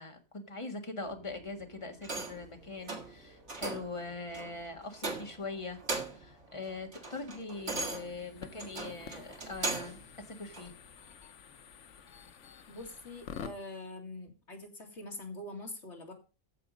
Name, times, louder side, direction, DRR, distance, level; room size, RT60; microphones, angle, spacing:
voice 1, 0.0-10.7, left 3 dB, 25° left, 4 dB, 1.7 m, -42 dB
sound 1, 1.0-13.7, right 1 dB, 50° right, 5.7 m, -62 dB
sound 2, 2.0-2.5 2.9-3.1 3.5-3.9 4.3-4.5 5.0-5.5 5.8-6.3 6.7-10.0 10.5-10.7, right 3 dB, 75° right, 2.3 m, -38 dB
sound 3, 7.5-13.5, left 7 dB, 85° left, 1.2 m, -49 dB
voice 2, 12.7-16.1, left 2 dB, 70° left, 1 dB, 2.7 m, -44 dB
14.5 x 4.9 x 5.1 m, 0.32 s
omnidirectional pair, 1.2 m